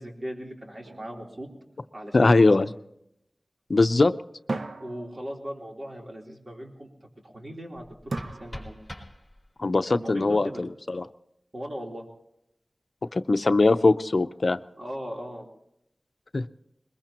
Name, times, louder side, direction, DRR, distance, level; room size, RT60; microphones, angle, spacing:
voice 1, 0.0-1.5 1.9-2.4 4.8-6.9 7.2-8.8 9.9-10.6 11.5-12.0 14.8-15.5, equal, 50° right, -1 dB, 3.5 m, -38 dB
sound 1, 0.8-2.4 4.5-5.9 8.1-9.2, right 3 dB, 80° right, 0.7 m, -38 dB
voice 2, 2.1-2.7 3.7-4.1 9.6-11.0 13.1-14.6 16.3-16.5, left 3 dB, 65° left, 11 dB, 0.6 m, -21 dB
sound 2, 7.7-9.7, left 1 dB, 5° left, 4.5 m, -44 dB
22.0 x 21.0 x 3.0 m, 0.79 s
wide cardioid pair, 70°, 0 cm